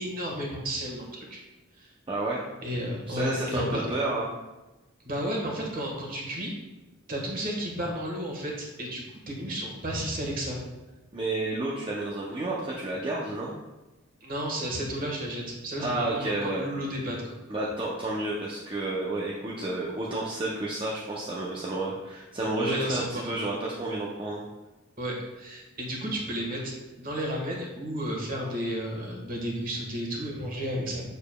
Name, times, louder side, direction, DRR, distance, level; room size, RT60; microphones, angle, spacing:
voice 1, 0.0-1.4 1.8-1.9 2.6-3.8 5.0-6.5 7.1-10.6 14.2-17.3 22.6-23.3 25.0-31.0, equal, 40° right, 0 dB, 1.5 m, -32 dB
voice 2, 2.1-2.4 3.1-4.3 11.1-13.5 15.8-16.7 17.5-24.4, right 2 dB, 25° right, -5 dB, 0.6 m, -31 dB
6.8 x 6.8 x 2.3 m, 1.1 s
head